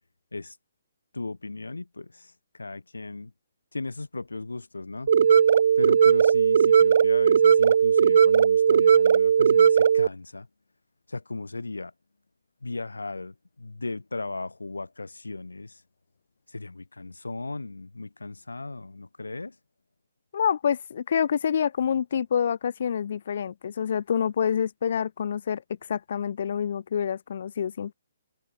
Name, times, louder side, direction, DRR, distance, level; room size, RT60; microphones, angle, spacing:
voice 1, 1.1-3.3 3.7-5.1 5.8-10.5 11.1-11.9 12.6-15.8 16.5-19.6, left 3 dB, 85° left, 2.0 m, -36 dB
sound 1, 5.1-10.1, right 8 dB, 55° right, 0.4 m, -18 dB
voice 2, 20.3-25.6 25.9-27.9, left 8 dB, 55° left, 2.1 m, -27 dB
figure-of-eight pair, 135°, 0 cm